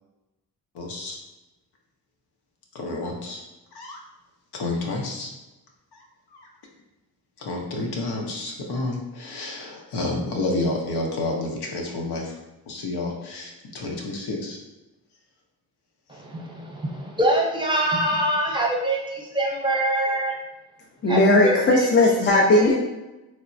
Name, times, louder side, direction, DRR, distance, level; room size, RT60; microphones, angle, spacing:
voice 1, 0.7-1.2 2.7-3.4 3.7-4.0 4.5-5.3 5.9-6.5 7.4-12.4 12.7-14.6, left 2 dB, 75° left, 0 dB, 0.7 m, -30 dB
voice 2, 16.1-20.4 21.1-21.9 22.3-22.6, right 1 dB, 10° right, -2 dB, 0.7 m, -24 dB
voice 3, 21.0-22.8, left 2 dB, 30° left, -2 dB, 0.4 m, -17 dB
3.1 x 2.1 x 2.5 m, 1.0 s
cardioid pair, 55°, 39 cm